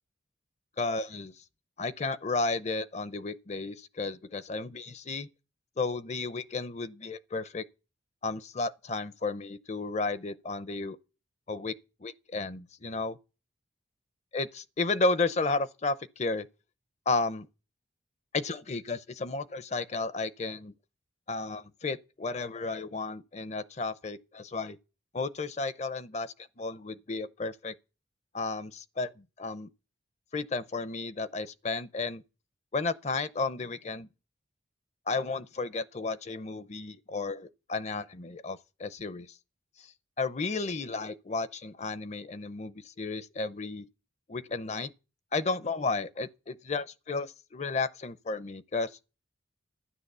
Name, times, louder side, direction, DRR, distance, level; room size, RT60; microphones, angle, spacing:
voice 1, 0.8-1.3 1.8-5.3 5.8-7.6 8.2-11.0 11.5-11.7 12.0-13.2 14.3-16.5 17.1-17.5 18.3-20.7 21.3-24.8 25.1-27.7 28.3-29.7 30.3-32.2 32.7-34.1 35.1-39.3 39.8-39.9 40.2-43.9 44.3-44.9 45.3-48.9, left 3 dB, 35° left, 0.6 m, -33 dB
12.5 x 10.0 x 6.7 m
head